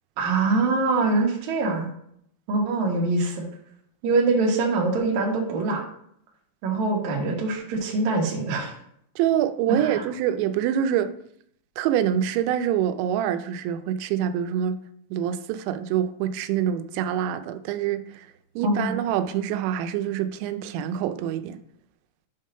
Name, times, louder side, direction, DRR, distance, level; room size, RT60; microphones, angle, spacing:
voice 1, 0.2-1.9 2.5-3.4 4.0-5.8 6.6-8.7 9.7-10.1 18.6-18.9, right 3 dB, 60° right, 2.1 m, -24 dB
voice 2, 9.2-11.1 11.8-14.8 15.1-18.3 18.6-21.6, right 10 dB, 90° right, 2.9 m, -25 dB
7.9 x 3.7 x 5.4 m
omnidirectional pair, 5.1 m